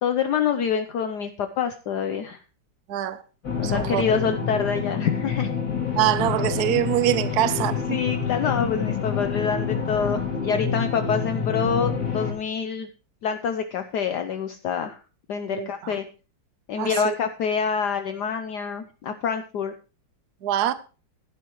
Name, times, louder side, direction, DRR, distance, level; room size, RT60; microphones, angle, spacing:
voice 1, 0.0-2.4 3.6-5.5 7.9-12.9 13.2-15.0 15.3-16.0 16.7-19.7, left 6 dB, 65° left, 1.3 m, -26 dB
voice 2, 2.9-3.2 3.6-4.0 6.0-7.9 15.5-16.0 16.8-17.1 20.4-20.7, right 12 dB, 60° right, 1.2 m, -24 dB
sound 1, 3.4-12.3, left 6 dB, 50° left, 3.5 m, -27 dB
15.5 x 11.5 x 3.1 m
omnidirectional pair, 2.1 m